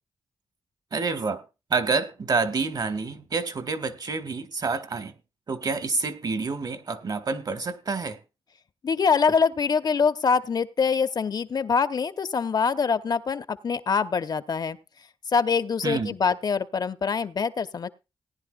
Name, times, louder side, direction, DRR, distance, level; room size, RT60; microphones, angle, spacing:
voice 1, 0.9-1.4 1.7-5.1 5.5-8.2 15.8-16.1, right 4 dB, 55° right, 1.7 m, -28 dB
voice 2, 8.8-14.8 15.3-17.9, left 5 dB, 55° left, 0.9 m, -24 dB
18.5 x 10.5 x 2.4 m
cardioid pair, 65°, 8 cm